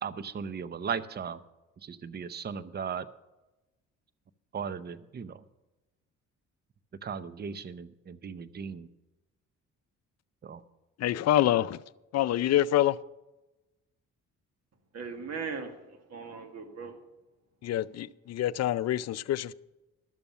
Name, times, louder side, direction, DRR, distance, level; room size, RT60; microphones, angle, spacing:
voice 1, 0.0-1.4 1.8-3.1 4.5-5.4 7.0-8.9 10.4-10.6, right 6 dB, 35° right, 0.7 m, -37 dB
voice 2, 11.0-11.8 12.1-13.0 17.6-19.5, left 13 dB, 60° left, 0.5 m, -26 dB
voice 3, 14.9-17.0, right 5 dB, 55° right, 1.7 m, -39 dB
12.5 x 6.9 x 7.1 m
cardioid pair, 90°, 30 cm